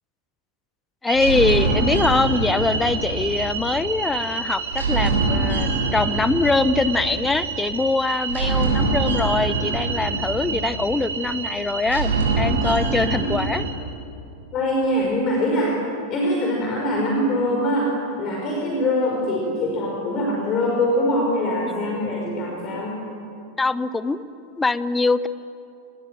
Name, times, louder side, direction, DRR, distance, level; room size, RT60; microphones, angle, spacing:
voice 1, 1.0-12.1 12.4-13.6 23.6-24.2 24.6-25.3, left 3 dB, 10° left, 15 dB, 0.8 m, -23 dB
sound 1, 1.1-13.7, right 3 dB, 65° right, 7.2 m, -24 dB
voice 2, 8.4-8.8 10.5-10.6 13.2-13.4 14.5-15.7 16.1-17.9 18.2-23.0, left 1 dB, 30° left, -1 dB, 5.4 m, -23 dB
29.0 x 21.0 x 9.1 m, 2.8 s
figure-of-eight pair, 90°, 0 cm